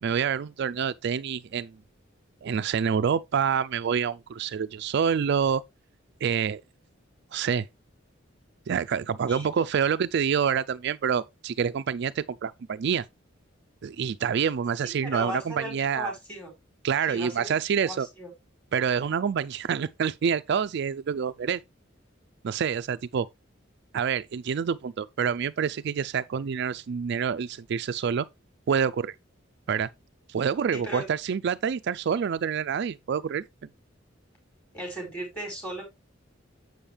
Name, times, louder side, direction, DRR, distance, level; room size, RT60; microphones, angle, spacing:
voice 1, 0.0-1.7 2.4-5.6 6.2-6.6 7.3-7.7 8.7-13.1 13.8-16.1 16.8-18.1 18.7-21.6 22.4-23.3 23.9-28.3 28.7-29.1 29.7-29.9 30.3-33.4, right 7 dB, 60° right, 0.4 m, -27 dB
voice 2, 15.0-16.5 17.1-18.3 30.7-31.0 34.7-35.8, equal, 5° left, 5.1 m, -37 dB
7.8 x 7.1 x 3.3 m
head